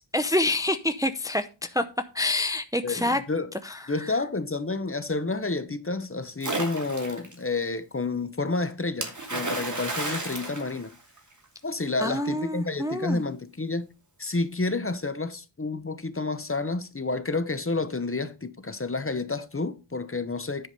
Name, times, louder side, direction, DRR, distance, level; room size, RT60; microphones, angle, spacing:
voice 1, 0.1-1.8 2.1-3.2 3.6-4.2 12.0-13.2, left 1 dB, 10° right, 0.6 m, -27 dB
voice 2, 2.8-3.5 3.9-10.9 11.6-13.9 14.2-20.7, left 3 dB, 30° left, 0.9 m, -30 dB
Splash splatter, 6.4-7.3 9.0-11.4, right 2 dB, 40° right, 2.6 m, -32 dB
10.0 x 4.9 x 5.4 m
wide cardioid pair, 75°, 44 cm